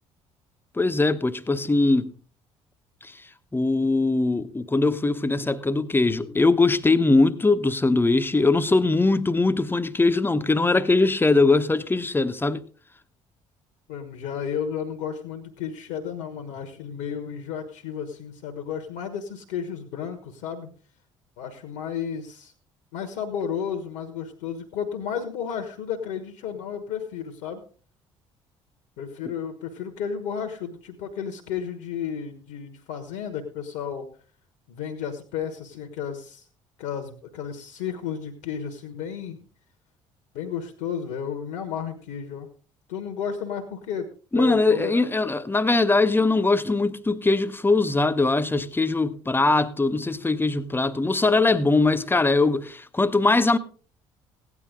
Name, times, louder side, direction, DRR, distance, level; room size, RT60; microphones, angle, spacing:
voice 1, 0.8-2.1 3.0-3.1 3.5-12.6 44.3-53.6, left 3 dB, 15° left, 1.0 m, -21 dB
voice 2, 13.9-20.7 21.4-22.5 22.9-27.6 29.0-34.1 34.7-36.5 36.8-39.4 40.3-42.5 42.9-44.1 44.3-45.1, left 7 dB, 65° left, 1.3 m, -32 dB
16.5 x 9.7 x 3.8 m
figure-of-eight pair, 50°, 16 cm